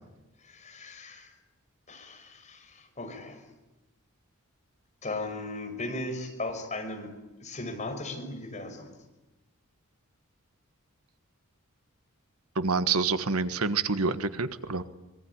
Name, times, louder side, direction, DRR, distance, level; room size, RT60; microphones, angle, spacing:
voice 1, 0.4-1.3 1.9-3.4 5.0-7.1 7.4-8.9, left 2 dB, 35° left, 4 dB, 5.9 m, -37 dB
voice 2, 12.5-14.8, right 4 dB, 90° right, 11 dB, 1.5 m, -27 dB
25.0 x 22.0 x 9.9 m, 1.0 s
head